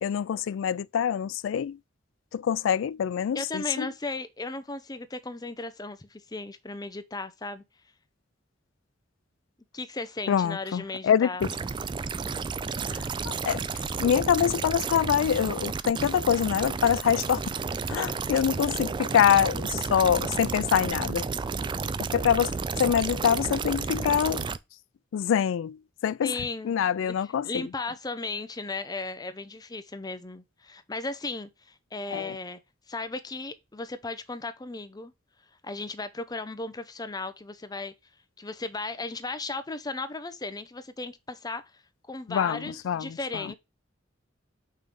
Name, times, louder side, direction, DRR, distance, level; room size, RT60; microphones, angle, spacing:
voice 1, 0.0-1.8 2.3-3.9 10.3-11.5 12.9-17.5 17.9-21.3 22.0-24.5 25.1-27.7 32.1-32.4 42.3-43.5, left 8 dB, 90° left, 0.3 m, -25 dB
voice 2, 3.3-7.6 9.7-11.4 26.2-27.1 27.4-32.6 32.9-35.1 35.6-37.9 38.4-41.6 42.1-43.5, left 3 dB, 20° left, 0.6 m, -36 dB
sound 1, 11.4-24.6, right 5 dB, 25° right, 0.3 m, -32 dB
5.6 x 3.2 x 5.2 m
head